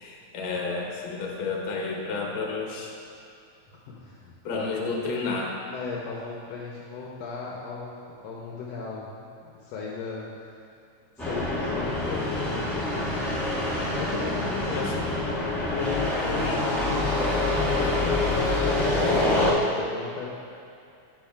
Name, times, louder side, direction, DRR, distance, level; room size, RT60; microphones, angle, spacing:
voice 1, 0.0-2.9 4.4-5.6 14.7-14.9 16.2-16.6, left 4 dB, 60° left, -1 dB, 1.5 m, -31 dB
voice 2, 3.7-4.9 5.6-7.9 8.2-10.5 11.2-13.2 13.6-15.4 15.7-18.2 18.6-20.3, left 5 dB, 75° left, -3 dB, 1.7 m, -36 dB
sound 1, 11.2-19.5, left 2 dB, ahead, 0.6 m, -26 dB
10.0 x 8.6 x 2.3 m, 2.5 s
omnidirectional pair, 3.4 m